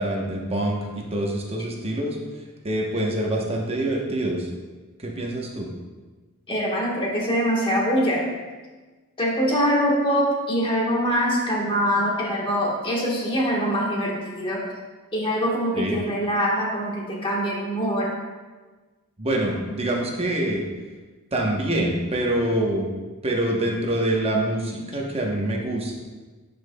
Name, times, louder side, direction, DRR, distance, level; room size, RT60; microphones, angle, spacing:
voice 1, 0.0-2.2 2.6-4.5 5.0-5.7 15.8-16.0 19.2-20.6 21.3-22.9 23.2-26.0, right 1 dB, 25° right, 0 dB, 0.9 m, -25 dB
voice 2, 6.5-8.3 9.2-14.7 15.1-18.1, equal, 25° left, -3 dB, 1.3 m, -23 dB
10.0 x 5.3 x 2.2 m, 1.3 s
head